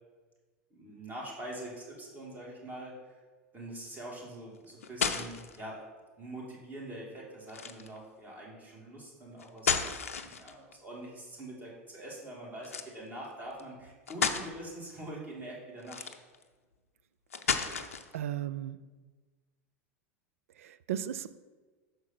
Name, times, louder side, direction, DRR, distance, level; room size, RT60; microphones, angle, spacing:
voice 1, 0.7-3.2 3.5-5.8 6.2-9.8 10.2-16.1, right 1 dB, 25° right, 2.6 m, -44 dB
Dropping bag of veggies onto floor repeatedly, 4.6-5.6 7.5-8.0 9.4-10.7 12.6-12.9 13.6-13.7 14.1-14.5 15.8-16.4 17.3-18.1, left 6 dB, 90° left, 0.5 m, -32 dB
voice 2, 17.5-18.8 20.6-21.4, right 11 dB, 80° right, 0.3 m, -37 dB
6.7 x 4.7 x 5.9 m
hypercardioid pair, 95°, 7 cm